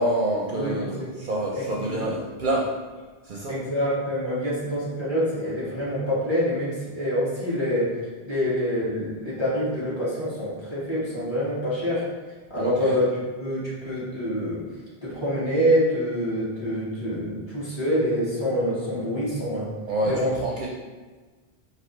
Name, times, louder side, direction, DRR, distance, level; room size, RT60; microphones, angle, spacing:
voice 1, 0.0-2.7 3.2-3.6 12.6-13.0 19.9-20.7, right 1 dB, 60° right, -2 dB, 0.6 m, -27 dB
voice 2, 0.5-1.1 1.5-2.0 3.5-7.9 8.2-12.0 12.5-13.1 13.4-14.6 15.0-19.7 20.0-20.3, equal, 25° left, -10 dB, 1.6 m, -26 dB
5.1 x 2.6 x 3.1 m, 1.3 s
omnidirectional pair, 1.1 m